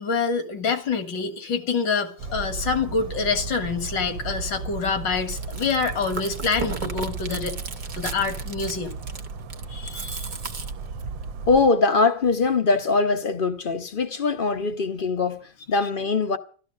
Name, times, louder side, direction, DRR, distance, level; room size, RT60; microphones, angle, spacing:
voice 1, 0.0-7.6 8.0-9.0 9.7-10.3, left 5 dB, 75° left, 2.3 m, -26 dB
Bird vocalization bird call bird song, 2.2-11.7, right 4 dB, 80° right, 1.5 m, -35 dB
Chewing mastication, 5.2-11.2, right 5 dB, 45° right, 0.6 m, -36 dB
voice 2, 11.5-16.4, left 4 dB, 40° left, 0.8 m, -22 dB
13.5 x 12.5 x 6.5 m
omnidirectional pair, 2.0 m